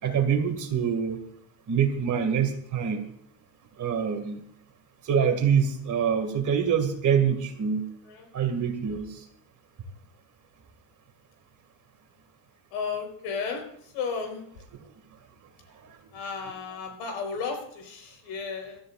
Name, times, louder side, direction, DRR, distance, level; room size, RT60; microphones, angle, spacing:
voice 1, 0.0-1.2 1.7-3.0 3.8-4.4 5.0-7.8 8.3-9.2, right 7 dB, 35° right, 6 dB, 2.4 m, -25 dB
voice 2, 12.7-14.4 16.1-18.8, left 5 dB, 75° left, 4 dB, 4.8 m, -34 dB
20.5 x 13.0 x 2.6 m, 0.67 s
cardioid pair, 135°, 49 cm